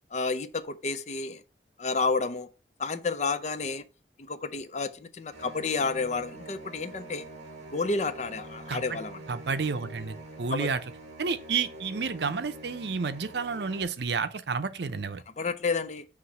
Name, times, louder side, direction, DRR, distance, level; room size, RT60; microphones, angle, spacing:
voice 1, 0.1-1.4 1.8-2.5 2.8-3.8 4.2-7.2 7.7-9.2 10.5-10.7 15.4-16.1, left 4 dB, 40° left, 0.5 m, -30 dB
sound 1, 5.3-13.8, right 1 dB, 40° right, 1.4 m, -45 dB
voice 2, 9.3-10.8 11.2-15.2, right 5 dB, 75° right, 0.6 m, -30 dB
5.9 x 3.1 x 5.7 m
head